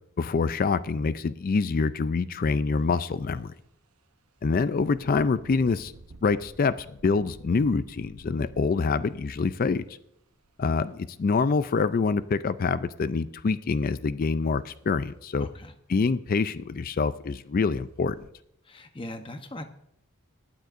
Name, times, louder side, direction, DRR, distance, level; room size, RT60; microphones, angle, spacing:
voice 1, 0.2-3.5 4.4-5.9 6.2-9.8 10.6-15.5 15.9-18.2, left 4 dB, 40° left, 14 dB, 0.4 m, -26 dB
Engine, 2.8-3.0 3.5-3.6 4.9-10.6 11.5-11.6 12.1-12.8 14.6-14.7 15.1-15.2 15.7-15.8 16.1-16.6 17.1-17.3 17.9-18.3, right 2 dB, 80° right, 0.8 m, -51 dB
voice 2, 15.4-15.7 18.6-19.6, left 1 dB, 25° left, 7 dB, 0.8 m, -39 dB
21.0 x 9.2 x 2.5 m, 0.77 s
head